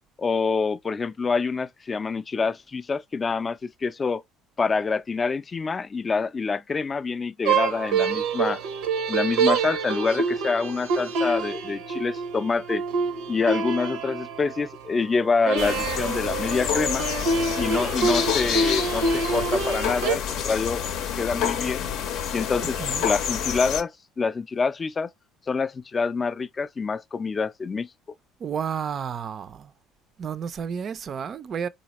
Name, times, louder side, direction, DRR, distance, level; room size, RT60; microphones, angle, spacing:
voice 1, 0.2-4.2 4.6-8.6 9.1-12.8 13.3-17.1 17.6-20.9 21.2-21.9 22.3-22.8 23.0-25.1 25.5-27.9, left 4 dB, 30° left, 0.3 m, -26 dB
sound 1, 7.5-14.8 15.5-20.2, right 4 dB, 85° right, 0.7 m, -26 dB
sound 2, 15.6-23.8, left 8 dB, 70° left, 0.6 m, -28 dB
voice 2, 22.6-23.1 28.4-29.7 30.2-31.7, right 7 dB, 45° right, 0.4 m, -31 dB
4.1 x 2.8 x 2.9 m
supercardioid pair, 90°, 0 cm